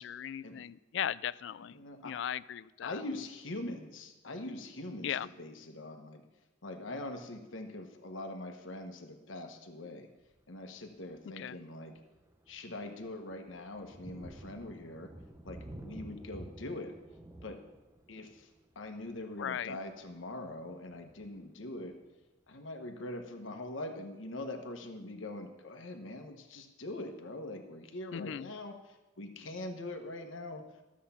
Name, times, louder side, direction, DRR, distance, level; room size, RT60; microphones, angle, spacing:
voice 1, 0.0-1.8 2.0-3.0 5.0-5.3 11.4-11.6 19.4-19.8 28.1-28.5, left 9 dB, 70° left, 19 dB, 0.3 m, -37 dB
voice 2, 1.7-2.1 2.8-6.2 6.6-10.1 10.5-11.9 12.5-15.1 15.4-16.9 17.4-17.6 18.1-18.5 18.7-22.0 22.5-30.7, left 2 dB, 90° left, 5 dB, 1.2 m, -43 dB
Thunder, 10.2-10.5 11.1-11.2 11.7-22.2, right 1 dB, 15° right, 0.7 m, -52 dB
12.5 x 7.5 x 5.7 m, 1.1 s
head